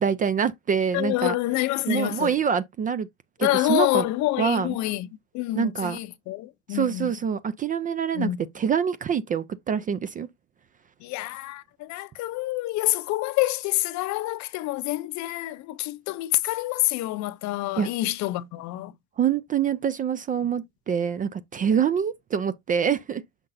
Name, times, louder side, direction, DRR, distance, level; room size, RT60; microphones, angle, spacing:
voice 1, 0.0-1.3 1.9-3.1 3.4-4.1 4.4-4.8 5.5-6.0 6.7-8.3 8.5-10.3 17.8-17.9 19.2-23.2, right 7 dB, 20° right, 0.4 m, -25 dB
voice 2, 0.9-2.4 3.4-5.1 5.3-7.1 8.1-8.4 11.0-18.9, left 17 dB, 45° left, 0.7 m, -27 dB
6.5 x 5.8 x 2.6 m
supercardioid pair, 115°, 39 cm